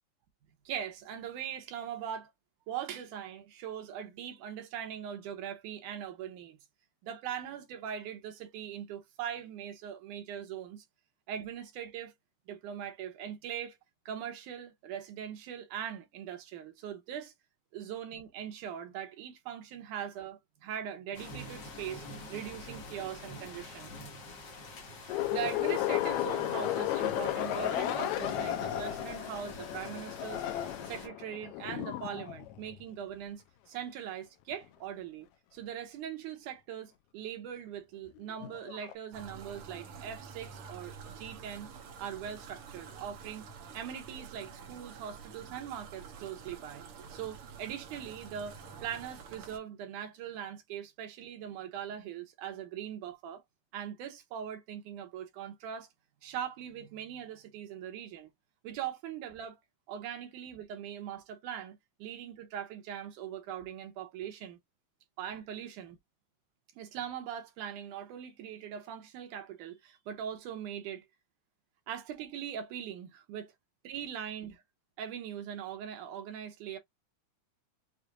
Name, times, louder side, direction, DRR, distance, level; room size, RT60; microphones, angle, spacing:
voice 1, 0.7-2.3 2.7-6.6 7.0-10.9 11.3-12.1 12.5-13.8 14.1-17.3 17.7-23.9 25.0-35.3 35.5-41.7 42.0-43.5 43.7-53.4 53.7-55.9 56.2-58.3 58.6-59.6 59.9-64.6 65.2-66.0 66.8-71.1 71.9-73.5 73.8-74.6 75.0-76.8, right 9 dB, 85° right, 2.4 m, -41 dB
sound 1, 21.1-31.1, left 2 dB, 50° left, 1.4 m, -46 dB
sound 2, 25.1-32.8 38.1-38.9, left 13 dB, 80° left, 1.8 m, -34 dB
sound 3, 39.1-49.6, right 6 dB, 65° right, 1.6 m, -48 dB
6.4 x 2.6 x 2.5 m
omnidirectional pair, 3.6 m